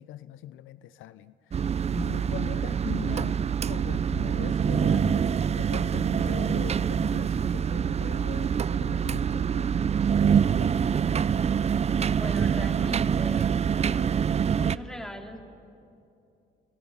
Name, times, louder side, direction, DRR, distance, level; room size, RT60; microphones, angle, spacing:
voice 1, 0.0-3.4 3.7-10.8, left 12 dB, 85° left, 0.6 m, -41 dB
sound 1, 1.5-14.8, right 7 dB, 35° right, 0.5 m, -25 dB
voice 2, 12.1-14.1 14.4-15.4, equal, 5° left, 3.0 m, -40 dB
29.5 x 24.0 x 5.7 m
cardioid pair, 90°, 20 cm